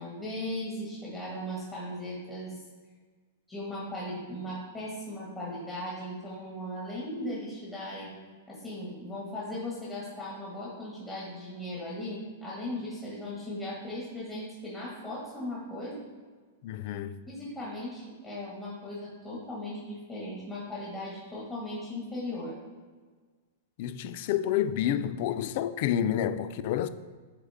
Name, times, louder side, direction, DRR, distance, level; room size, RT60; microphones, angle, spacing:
voice 1, 0.0-2.5 3.5-8.1 8.5-16.0 17.3-22.6, left 1 dB, 15° left, 1.7 m, -37 dB
voice 2, 16.6-17.2 23.8-26.9, left 10 dB, 55° left, 0.3 m, -29 dB
8.1 x 3.6 x 3.5 m
hypercardioid pair, 130°, 0 cm